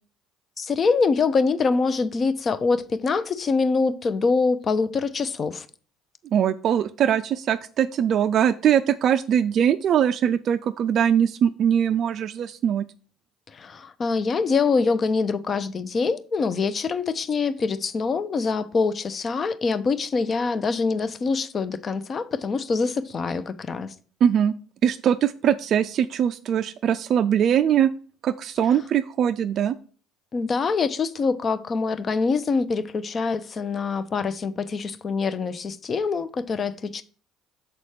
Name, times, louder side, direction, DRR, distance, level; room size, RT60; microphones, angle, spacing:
voice 1, 0.6-5.7 13.5-23.9 30.3-37.0, left 4 dB, 40° left, 0.7 m, -24 dB
voice 2, 6.3-12.8 24.2-24.5 24.8-27.9 28.2-29.8, right 9 dB, 55° right, 0.3 m, -21 dB
6.6 x 4.2 x 4.8 m
hypercardioid pair, 65°, 0 cm